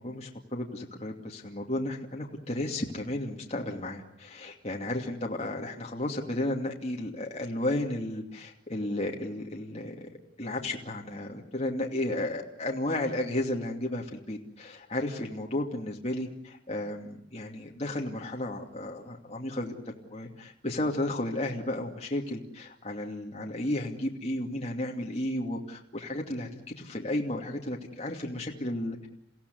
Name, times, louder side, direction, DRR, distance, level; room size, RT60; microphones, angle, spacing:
voice 1, 0.0-10.1 10.4-29.1, left 1 dB, 35° left, 0 dB, 2.7 m, -33 dB
30.0 x 16.5 x 9.6 m, 0.75 s
head